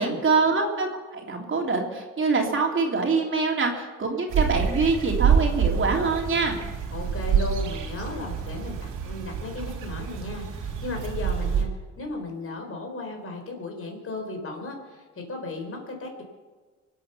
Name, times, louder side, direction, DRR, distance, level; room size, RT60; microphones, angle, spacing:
voice 1, 0.0-6.6, right 4 dB, 40° right, 1 dB, 3.2 m, -25 dB
sound 1, 4.3-11.6, right 7 dB, 85° right, 2.7 m, -27 dB
voice 2, 6.9-11.7 12.0-16.2, left 2 dB, 45° left, 3 dB, 4.3 m, -35 dB
23.5 x 8.6 x 6.9 m, 1.4 s
cardioid pair, 90°, 30 cm